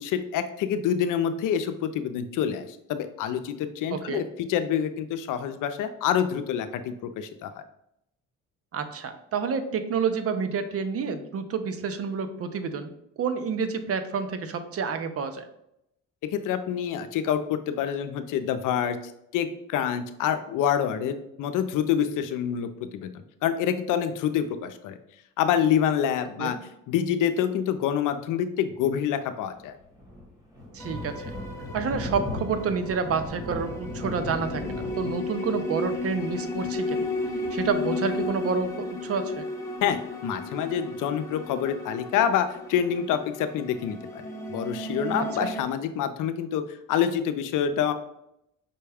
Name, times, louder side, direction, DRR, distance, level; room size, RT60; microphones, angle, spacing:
voice 1, 0.0-7.6 16.2-19.0 19.3-23.1 23.4-25.0 25.4-26.6 26.9-29.7 39.8-46.6 46.9-47.9, left 9 dB, 70° left, 10 dB, 0.5 m, -27 dB
voice 2, 3.9-4.2 8.7-12.9 13.2-15.4 26.4-26.6 30.7-31.3 31.7-37.0 37.5-39.4 45.2-45.5, right 5 dB, 45° right, 9 dB, 0.6 m, -29 dB
Thunder, 29.5-38.7, left 1 dB, 10° right, 1.4 m, -38 dB
sound 1, 30.8-45.6, left 2 dB, 10° left, 0.8 m, -34 dB
5.4 x 2.2 x 3.4 m, 0.78 s
cardioid pair, 80°, 32 cm